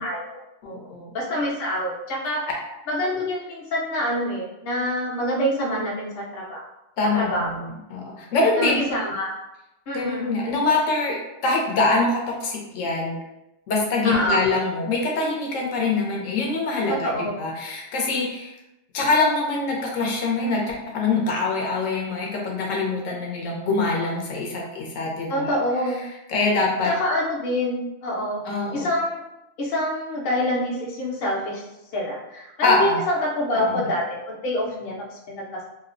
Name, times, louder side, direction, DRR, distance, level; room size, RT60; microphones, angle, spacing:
voice 1, 0.0-0.8 1.1-2.4 2.9-6.6 7.1-7.6 8.6-9.3 9.9-10.4 14.0-14.4 16.9-17.4 25.3-26.0 26.8-28.4 28.7-29.2 29.6-31.6 31.9-34.9 35.3-35.6, left 1 dB, 55° left, -3 dB, 0.8 m, -26 dB
voice 2, 0.6-1.1 7.0-8.9 9.9-11.2 11.4-13.2 13.7-18.5 18.9-25.6 26.3-26.9 28.4-28.9 32.6-33.0 33.5-33.9, left 3 dB, 85° left, -1 dB, 1.0 m, -24 dB
2.8 x 2.0 x 2.4 m, 0.92 s
omnidirectional pair, 1.3 m